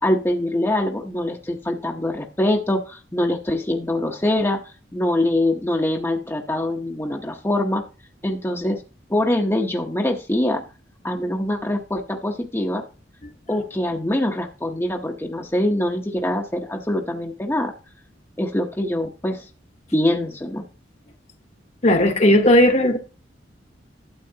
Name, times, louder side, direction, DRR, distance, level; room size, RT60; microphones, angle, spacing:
voice 1, 0.0-4.6 4.9-7.8 8.2-8.8 9.1-10.6 11.0-12.8 13.5-17.7 18.4-19.5 19.9-20.6, left 1 dB, 15° left, 0.9 m, -23 dB
voice 2, 21.8-23.0, left 1 dB, 40° left, 1.1 m, -15 dB
12.0 x 8.3 x 2.8 m
head